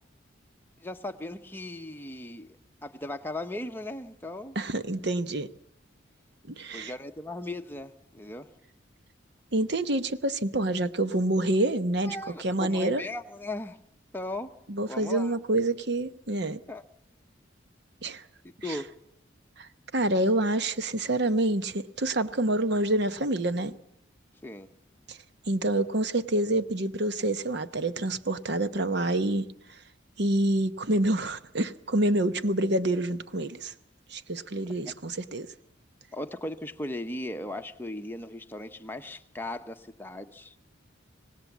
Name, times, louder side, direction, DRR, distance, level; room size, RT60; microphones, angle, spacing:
voice 1, 0.8-2.6 2.8-4.6 6.7-8.5 12.0-13.8 14.1-14.5 14.9-15.4 16.7-16.8 18.6-18.9 24.4-24.7 36.1-40.6, left 1 dB, 10° left, 1.0 m, -37 dB
voice 2, 4.5-5.5 6.5-6.9 9.5-13.0 14.7-16.6 18.0-18.2 18.7-18.8 19.6-23.7 25.1-25.2 25.5-29.5 30.2-33.7 34.1-35.5, right 1 dB, 60° right, 1.0 m, -27 dB
25.5 x 19.0 x 7.3 m
head